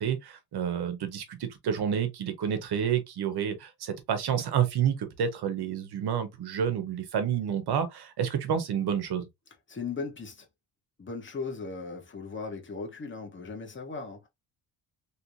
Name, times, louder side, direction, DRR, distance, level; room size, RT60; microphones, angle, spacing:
voice 1, 0.0-9.3, right 8 dB, 65° right, 1.2 m, -29 dB
voice 2, 9.7-10.5 11.0-14.3, left 4 dB, 30° left, 1.4 m, -37 dB
3.3 x 3.1 x 2.7 m
cardioid pair, 105°, 42 cm